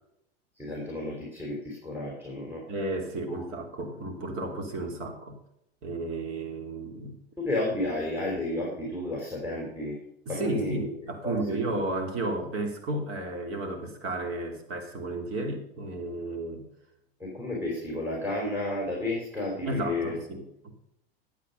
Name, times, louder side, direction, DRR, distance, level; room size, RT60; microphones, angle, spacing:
voice 1, 0.6-2.6 3.3-3.5 7.4-10.0 10.3-10.9 11.2-11.4 11.7-11.8 17.2-20.1, left 2 dB, 5° right, -2 dB, 4.2 m, -32 dB
voice 2, 2.7-5.3 5.8-7.2 10.2-16.6 19.6-20.7, right 2 dB, 45° right, 4 dB, 3.3 m, -33 dB
12.0 x 8.5 x 5.5 m, 0.80 s
hypercardioid pair, 95°, 31 cm